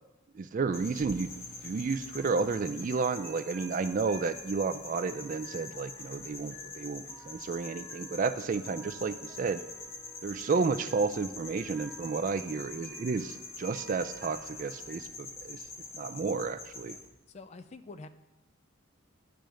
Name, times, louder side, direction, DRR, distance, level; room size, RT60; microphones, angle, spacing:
voice 1, 0.3-1.3 1.6-9.6 10.2-15.6 15.9-17.0, right 4 dB, 40° right, 11 dB, 0.3 m, -32 dB
sound 1, 0.7-17.1, left 3 dB, 85° left, 1.8 m, -45 dB
sound 2, 2.1-15.0, equal, 10° left, 1.0 m, -53 dB
voice 2, 17.3-18.1, left 3 dB, 35° left, 10 dB, 0.4 m, -46 dB
10.5 x 3.5 x 6.3 m, 0.96 s
head